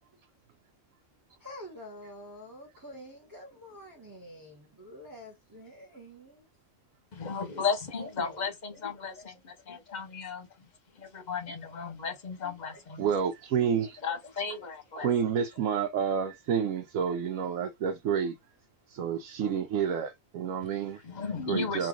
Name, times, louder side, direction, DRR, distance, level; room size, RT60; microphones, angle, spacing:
voice 1, 1.4-6.5, left 1 dB, 20° right, 0.9 m, -47 dB
voice 2, 7.1-10.7 10.9-13.3 14.0-15.1 20.9-21.9, left 5 dB, 40° left, 0.9 m, -35 dB
voice 3, 13.0-14.0 15.0-18.4 18.9-21.0 21.5-21.9, right 7 dB, 90° right, 1.0 m, -29 dB
3.2 x 2.5 x 3.6 m
omnidirectional pair, 1.3 m